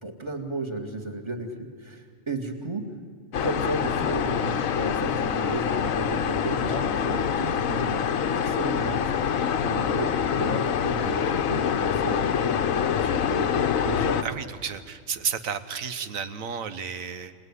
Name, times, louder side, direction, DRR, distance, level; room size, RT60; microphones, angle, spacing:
voice 1, 0.0-2.9 3.4-8.0 8.3-9.1 9.6-14.2, right 2 dB, 20° right, 4 dB, 2.2 m, -33 dB
sound 1, 3.3-14.2, left 8 dB, 90° left, 1.3 m, -25 dB
voice 2, 14.2-17.3, right 7 dB, 85° right, 11 dB, 1.5 m, -32 dB
26.5 x 18.5 x 9.8 m, 2.1 s
omnidirectional pair, 1.4 m